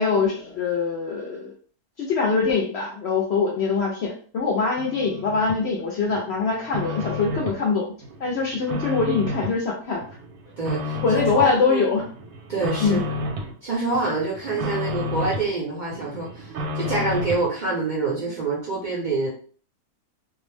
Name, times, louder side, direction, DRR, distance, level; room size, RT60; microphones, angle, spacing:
voice 1, 0.0-1.5 2.0-7.9 8.2-10.0 11.0-12.0 12.8-13.0, left 4 dB, 65° left, -2 dB, 0.6 m, -23 dB
sound 1, 4.8-5.6 6.1-7.6 8.0-9.6 10.0-11.6 12.0-13.5 13.9-15.5 15.9-17.5, left 2 dB, 75° right, 1.1 m, -31 dB
voice 2, 10.6-11.0 11.3-11.8 12.5-13.0 13.6-19.3, right 3 dB, 45° right, -5 dB, 0.6 m, -26 dB
2.5 x 2.0 x 3.1 m, 0.43 s
omnidirectional pair, 1.5 m